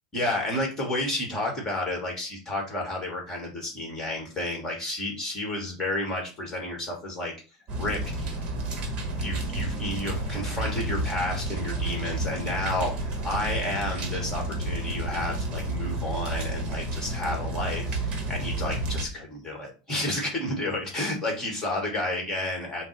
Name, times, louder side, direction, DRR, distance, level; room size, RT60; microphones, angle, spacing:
voice 1, 0.1-7.3 7.8-8.4 9.2-22.9, left 1 dB, 15° left, 0 dB, 1.5 m, -31 dB
sound 1, 7.7-19.1, right 2 dB, 30° right, 1.0 m, -31 dB
5.5 x 2.0 x 4.5 m, 0.34 s
supercardioid pair, 160°, 3 cm